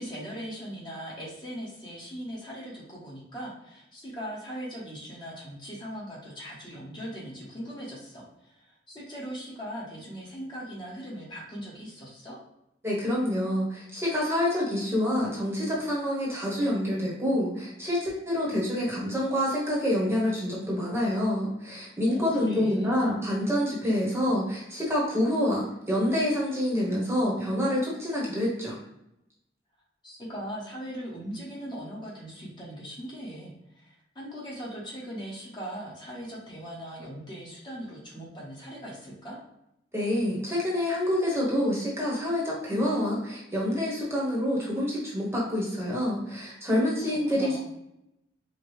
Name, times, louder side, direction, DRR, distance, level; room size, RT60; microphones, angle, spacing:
voice 1, 0.0-12.4 22.1-22.9 30.0-39.4 46.7-47.6, equal, 25° left, -6 dB, 1.1 m, -40 dB
voice 2, 12.8-28.7 39.9-47.6, left 1 dB, 15° right, -5 dB, 1.0 m, -27 dB
5.0 x 2.2 x 3.1 m, 0.84 s
head